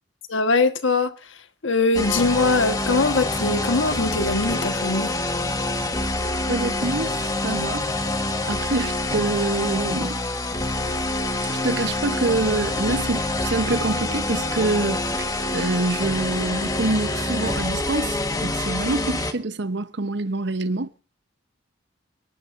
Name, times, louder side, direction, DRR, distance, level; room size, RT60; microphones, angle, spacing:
voice 1, 0.3-1.1 1.6-5.1, left 3 dB, 75° left, 1.3 m, -22 dB
sound 1, 1.9-19.3, left 2 dB, 20° left, 1.4 m, -26 dB
voice 2, 6.5-7.9 8.4-10.1 11.4-20.9, right 3 dB, 60° right, 0.9 m, -26 dB
29.0 x 11.0 x 2.6 m
head